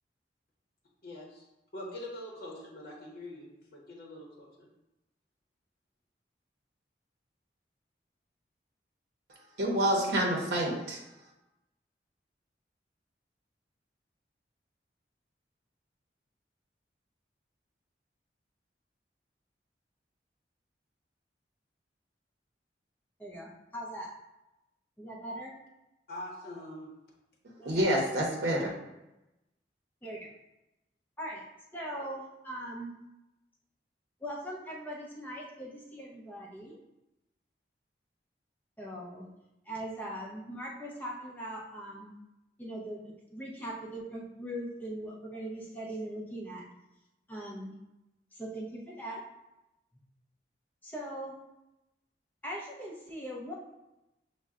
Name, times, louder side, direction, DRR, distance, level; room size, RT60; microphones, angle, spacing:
voice 1, 1.0-1.5 1.7-4.7 26.1-26.9, left 1 dB, 55° left, 0.8 m, -44 dB
voice 2, 9.6-11.0 27.6-28.7, right 1 dB, 75° right, 0.7 m, -28 dB
voice 3, 23.2-24.1 25.0-25.5 27.6-27.9 30.0-30.3 31.2-31.4 31.7-32.9 34.2-36.7 38.8-39.3 39.7-42.1 42.6-43.0 43.3-46.6 47.3-47.7 48.3-49.2 50.8-51.3 52.4-53.5, right 1 dB, 10° left, 0.6 m, -40 dB
5.4 x 2.1 x 3.6 m
head